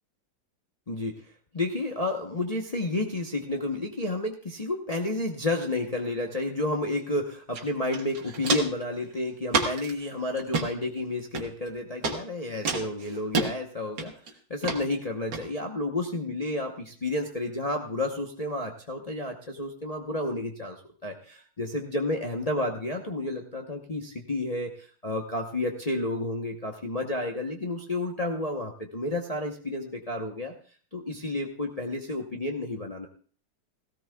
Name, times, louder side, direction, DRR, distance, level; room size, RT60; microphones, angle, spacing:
voice 1, 0.9-1.2 1.5-14.1 14.5-30.5 30.9-33.1, left 2 dB, 45° left, 1 dB, 0.4 m, -31 dB
Walk footsteps, 7.5-7.6 7.9-8.8 9.5-9.9 10.4-10.7 11.3-11.7 12.0-12.2 12.7-13.5 14.0-14.3 14.6-14.8 15.3-15.4, right 4 dB, 60° right, 2.1 m, -28 dB
17.0 x 16.5 x 2.3 m, 0.43 s
omnidirectional pair, 2.3 m